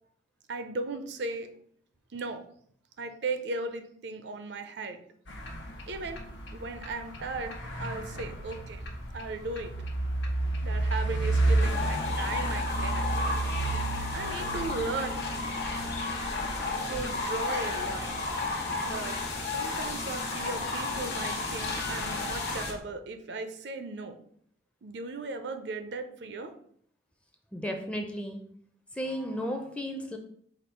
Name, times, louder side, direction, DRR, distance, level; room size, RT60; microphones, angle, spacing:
voice 1, 0.5-1.5 2.1-2.4 3.0-5.0 5.9-6.2 6.5-8.8 9.1-9.7 10.6-13.3 14.1-15.3 16.9-18.2 18.8-19.2 19.5-24.2 24.8-26.5, right 3 dB, 70° right, 8 dB, 0.5 m, -36 dB
sound 1, 5.3-22.8, right 2 dB, 85° left, 0.8 m, -33 dB
sound 2, 11.6-22.7, left 3 dB, 60° left, 1.0 m, -33 dB
voice 2, 27.5-28.5 28.9-30.2, equal, 5° left, 3 dB, 0.5 m, -34 dB
5.1 x 2.4 x 4.4 m, 0.63 s
head